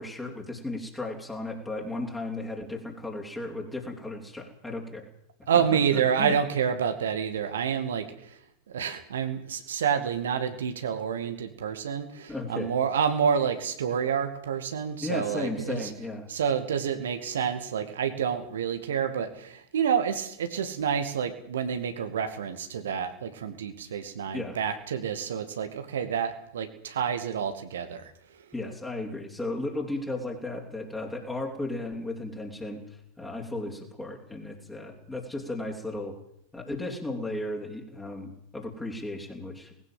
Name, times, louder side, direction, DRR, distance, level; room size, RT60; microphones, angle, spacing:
voice 1, 0.0-5.1 5.5-5.6 5.9-6.3 12.3-12.7 15.0-16.3 24.3-24.6 28.5-32.8 33.2-36.2 36.5-39.7, left 2 dB, 10° left, -1 dB, 4.0 m, -35 dB
voice 2, 5.5-8.4 8.7-15.9 16.3-28.1, right 7 dB, 65° right, 8 dB, 2.3 m, -28 dB
20.0 x 17.0 x 7.8 m, 0.71 s
figure-of-eight pair, 90°, 0 cm